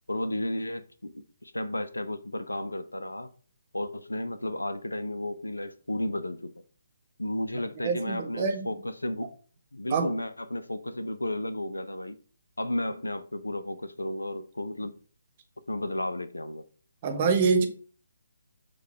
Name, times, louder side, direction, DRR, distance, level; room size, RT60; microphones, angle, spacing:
voice 1, 0.1-3.3 3.7-6.5 7.2-9.3 9.7-12.2 12.6-14.9 15.7-16.6, left 1 dB, 90° left, 0.5 m, -33 dB
voice 2, 7.8-8.7 9.9-10.1 17.0-17.7, right 5 dB, 35° right, 0.8 m, -25 dB
6.4 x 2.3 x 3.4 m
figure-of-eight pair, 140°, 0 cm